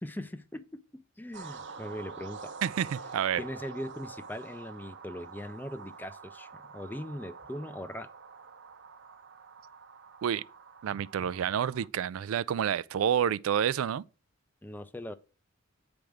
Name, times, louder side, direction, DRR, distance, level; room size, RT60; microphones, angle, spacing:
voice 1, 0.0-2.5 3.4-8.1 14.6-15.1, left 1 dB, 10° left, 0.4 m, -40 dB
sound 1, 1.3-11.9, right 5 dB, 55° right, 0.7 m, -47 dB
voice 2, 2.6-3.4 10.2-10.4 10.8-14.0, right 9 dB, 85° right, 0.3 m, -29 dB
8.9 x 3.5 x 6.3 m
head